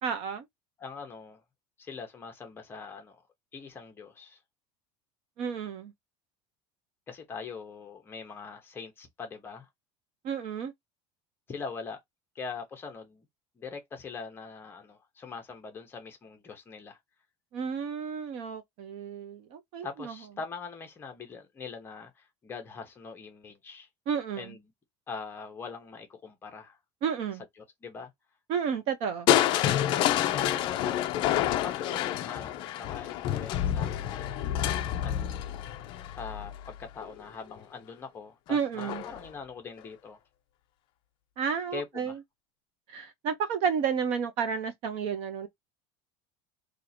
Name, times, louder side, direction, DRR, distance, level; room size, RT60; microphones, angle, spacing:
voice 1, 0.0-0.5 5.4-5.9 10.2-10.7 17.5-20.2 24.1-24.6 27.0-27.4 28.5-29.3 38.5-39.0 41.4-42.2 42.9-45.5, right 7 dB, 45° right, 0.7 m, -31 dB
voice 2, 0.8-1.4 1.8-3.2 3.5-4.4 7.1-9.7 11.5-12.0 12.3-13.3 13.6-17.0 19.8-23.9 24.4-24.6 25.1-26.8 27.8-28.1 29.8-31.1 31.6-34.4 35.0-35.3 36.1-40.2 41.7-42.2, left 5 dB, 15° left, 0.9 m, -42 dB
Crushing, 29.3-37.2 38.8-39.3 39.8-39.9, left 11 dB, 35° left, 0.4 m, -28 dB
2.8 x 2.7 x 4.2 m
cardioid pair, 175°, 14 cm